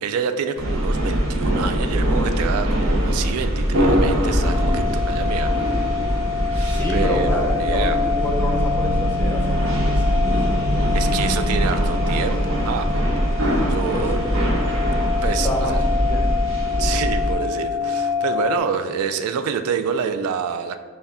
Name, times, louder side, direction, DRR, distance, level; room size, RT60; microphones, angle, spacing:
voice 1, 0.0-6.0 6.9-8.0 10.8-12.9 13.7-14.2 15.2-15.8 16.8-20.8, right 6 dB, 85° right, 13 dB, 0.3 m, -27 dB
sound 1, 0.6-17.3, equal, 65° right, 1.0 m, -22 dB
sound 2, 4.4-18.6, left 6 dB, 75° left, 0.3 m, -27 dB
voice 2, 6.5-10.3 10.7-11.3 13.8-14.2 15.4-15.7 16.0-16.3, left 1 dB, 10° left, -1 dB, 0.6 m, -29 dB
sound 3, 8.1-13.8 14.1-14.2, right 2 dB, 45° right, 0.8 m, -31 dB
5.3 x 2.3 x 3.5 m, 1.5 s
head